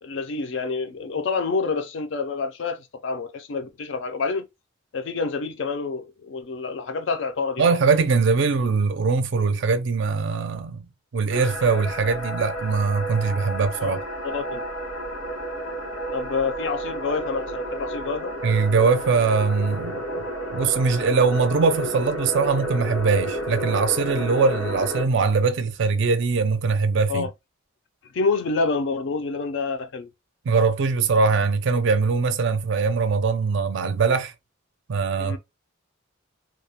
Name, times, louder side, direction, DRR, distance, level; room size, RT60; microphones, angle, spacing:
voice 1, 0.0-4.5 4.9-7.7 13.8-14.6 15.3-15.4 16.1-18.4 27.1-27.3 28.1-30.1 35.2-35.4, left 4 dB, 60° left, 0.4 m, -28 dB
voice 2, 7.6-10.8 11.1-14.0 18.4-20.3 20.5-27.3 30.5-34.3 34.9-35.4, right 4 dB, 60° right, 0.4 m, -22 dB
sound 1, 11.3-25.1, right 1 dB, 85° left, 1.1 m, -31 dB
2.3 x 2.0 x 2.8 m
head